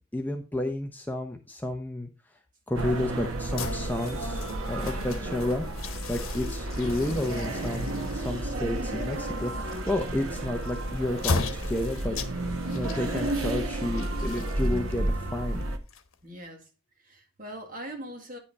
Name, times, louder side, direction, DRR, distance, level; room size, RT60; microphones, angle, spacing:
voice 1, 0.1-2.1 2.7-4.4 4.7-5.6 6.1-12.2 12.7-15.7, left 1 dB, 10° left, 0.7 m, -31 dB
sound 1, 2.7-15.8, right 1 dB, 85° right, 1.3 m, -32 dB
sound 2, 3.4-16.5, left 4 dB, 85° left, 1.1 m, -38 dB
voice 2, 16.2-16.7 17.0-18.4, right 1 dB, 40° right, 2.0 m, -41 dB
9.6 x 5.6 x 4.2 m
head